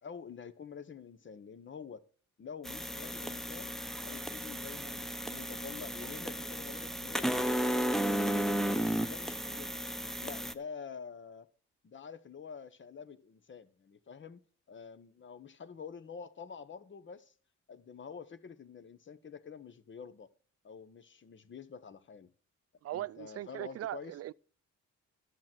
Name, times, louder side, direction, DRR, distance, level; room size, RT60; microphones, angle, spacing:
voice 1, 0.0-2.0 2.4-3.7 4.0-8.4 8.7-9.9 10.2-11.5 11.8-14.4 14.7-17.3 17.7-20.3 20.6-22.3 22.9-24.2, left 6 dB, 40° left, 1.1 m, -48 dB
sound 1, 2.6-10.5, equal, ahead, 0.9 m, -34 dB
voice 2, 22.8-24.3, right 13 dB, 55° right, 0.5 m, -39 dB
11.5 x 7.7 x 6.1 m
cardioid pair, 90°, 30 cm